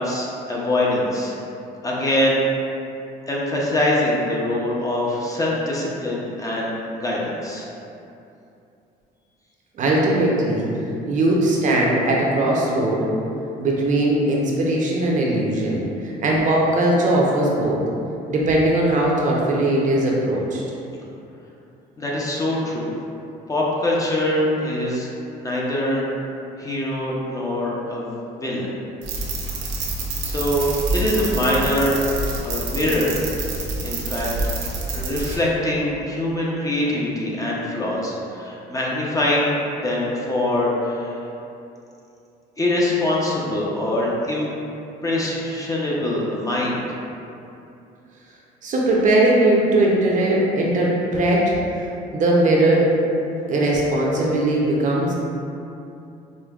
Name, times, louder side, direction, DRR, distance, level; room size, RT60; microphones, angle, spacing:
voice 1, 0.0-1.4 1.8-2.4 3.3-7.7 22.0-22.9 23.5-25.1 25.4-26.1 26.6-28.7 30.2-32.0 32.4-33.1 33.8-34.5 34.9-41.2 42.6-44.5 45.0-46.8, left 1 dB, 20° left, -5 dB, 0.6 m, -23 dB
voice 2, 9.8-10.7 11.1-13.1 13.6-17.8 18.3-20.6 48.6-51.5 52.1-52.9 53.5-55.1, right 1 dB, 50° right, -3 dB, 0.6 m, -19 dB
sound 1, 29.0-35.4, right 2 dB, 90° right, 0.6 m, -27 dB
5.0 x 2.2 x 2.3 m, 2.7 s
cardioid pair, 110°, 17 cm